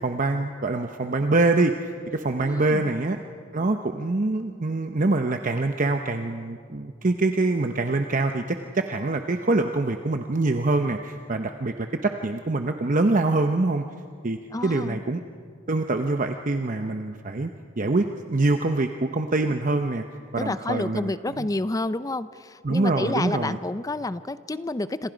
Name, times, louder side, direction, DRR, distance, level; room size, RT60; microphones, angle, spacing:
voice 1, 0.0-1.7 2.1-3.2 3.5-13.9 14.2-15.2 15.7-17.5 17.8-20.0 20.3-21.1 21.4-21.5 22.6-23.6, right 2 dB, 40° right, 6 dB, 0.8 m, -24 dB
voice 2, 2.4-2.9 14.5-15.0 20.4-25.1, left 2 dB, 20° left, 14 dB, 0.5 m, -29 dB
27.0 x 26.0 x 5.1 m, 2.1 s
head